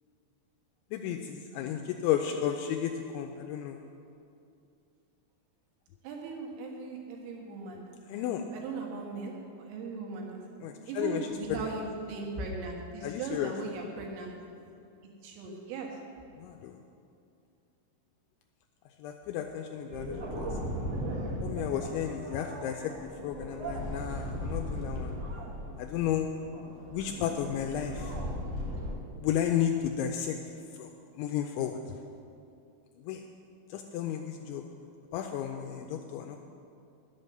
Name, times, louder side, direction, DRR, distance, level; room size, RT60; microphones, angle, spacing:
voice 1, 0.9-3.8 8.1-8.5 10.6-11.7 13.0-13.5 16.4-16.8 19.0-20.5 21.4-22.9 23.2-25.1 25.8-26.3 26.9-28.2 29.2-30.4 30.7-32.0 33.0-33.2 33.7-34.6 35.1-36.4, left 10 dB, 85° left, 4 dB, 2.7 m, -33 dB
voice 2, 6.0-10.4 10.9-14.3 15.2-15.9, right 3 dB, 90° right, 0 dB, 4.2 m, -38 dB
sound 1, 19.9-28.9, equal, 65° right, 1.6 m, -37 dB
11.0 x 8.2 x 6.6 m, 2.5 s
omnidirectional pair, 5.7 m